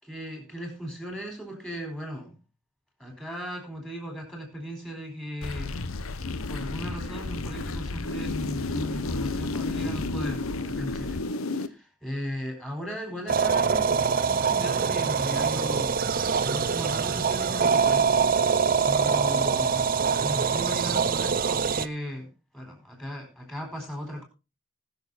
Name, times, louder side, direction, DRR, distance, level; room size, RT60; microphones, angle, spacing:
voice 1, 0.0-2.4 3.0-6.1 6.5-11.2 11.6-16.0 16.4-18.1 18.9-19.9 20.2-22.3 22.5-24.2, equal, 5° left, 2 dB, 4.5 m, -37 dB
sound 1, 5.4-11.7, left 3 dB, 85° left, 0.9 m, -31 dB
sound 2, 13.3-21.9, right 6 dB, 45° right, 0.5 m, -24 dB
19.0 x 7.0 x 4.1 m, 0.30 s
head